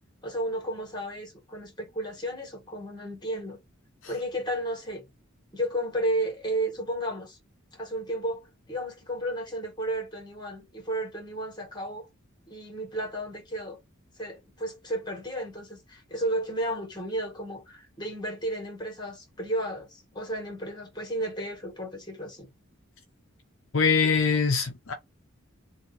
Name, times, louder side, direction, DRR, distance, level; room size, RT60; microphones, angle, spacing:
voice 1, 0.2-3.6 4.1-5.1 5.5-7.4 7.7-12.1 12.5-13.8 14.2-22.5, right 1 dB, 20° left, 1.7 m, -33 dB
voice 2, 23.7-24.9, left 5 dB, 60° left, 0.7 m, -23 dB
3.0 x 2.6 x 4.2 m
head